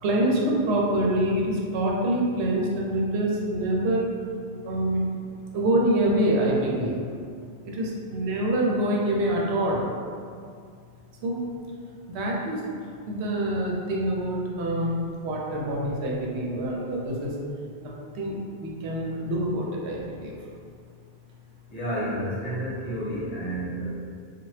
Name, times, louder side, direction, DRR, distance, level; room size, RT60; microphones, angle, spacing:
voice 1, 0.0-4.1 4.6-5.1 5.5-7.0 7.6-9.9 11.2-11.4 12.1-12.7 13.1-15.0 15.2-17.4 17.8-20.3, right 1 dB, 85° right, -2 dB, 0.9 m, -26 dB
voice 2, 21.7-23.9, equal, 40° left, -9 dB, 1.0 m, -30 dB
2.8 x 2.3 x 3.1 m, 2.2 s
omnidirectional pair, 1.1 m